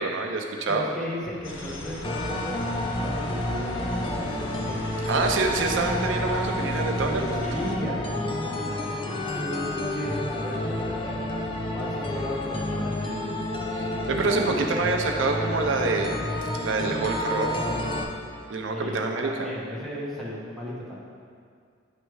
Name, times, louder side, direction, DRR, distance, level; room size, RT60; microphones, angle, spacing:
voice 1, 0.0-0.9 5.1-7.5 13.7-16.2 16.6-17.7 18.5-19.5, right 3 dB, 70° right, 2 dB, 0.5 m, -26 dB
voice 2, 0.7-5.4 5.7-5.8 7.4-13.4 18.4-21.0, equal, ahead, -7 dB, 1.1 m, -36 dB
sound 1, 1.4-7.7, left 1 dB, 70° left, 0.7 m, -38 dB
sound 2, 2.0-18.0, left 1 dB, 25° left, 0.5 m, -30 dB
9.2 x 3.2 x 4.7 m, 2.2 s
head